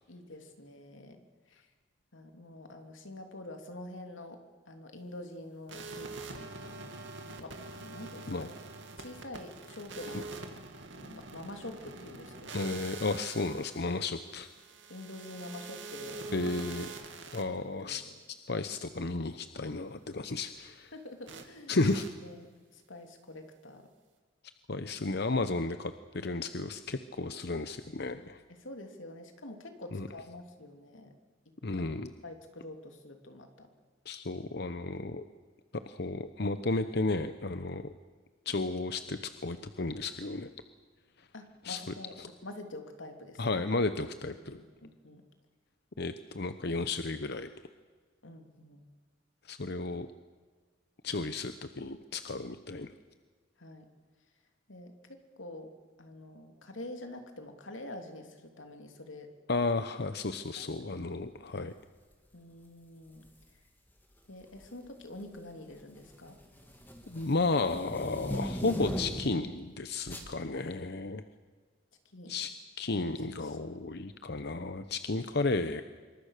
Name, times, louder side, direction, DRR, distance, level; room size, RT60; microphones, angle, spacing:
voice 1, 0.1-1.7 2.1-4.4 4.7-7.0 7.3-8.5 9.0-10.4 10.9-12.8 14.9-16.5 17.7-18.1 20.9-21.8 22.2-22.5 22.7-23.8 28.5-31.1 32.2-33.7 41.3-42.1 42.4-43.6 44.3-45.2 48.2-48.8 53.6-53.9 54.7-55.7 56.0-59.3 60.6-61.2 62.3-63.3 64.3-66.4 70.2-71.0 72.1-72.3 72.9-73.8, left 1 dB, 90° left, 5 dB, 3.1 m, -47 dB
sound 1, 5.7-17.4 21.3-21.4 21.8-22.1, right 4 dB, 75° right, 2.6 m, -45 dB
voice 2, 12.5-14.5 16.3-17.0 17.3-18.0 18.5-20.9 21.7-22.1 24.7-28.4 29.9-30.1 31.6-32.1 34.1-35.2 35.9-37.9 38.5-40.5 41.2-41.3 41.6-41.8 42.2-42.3 43.4-44.6 46.0-47.5 49.4-50.1 51.0-52.9 59.5-61.7 67.1-71.2 72.3-72.5 72.8-75.8, left 3 dB, 55° left, 10 dB, 0.9 m, -33 dB
sound 2, 63.1-63.4 64.4-64.9 65.2-69.5 70.1-70.3, equal, 10° left, 2.9 m, -39 dB
26.0 x 24.0 x 6.7 m, 1.5 s
head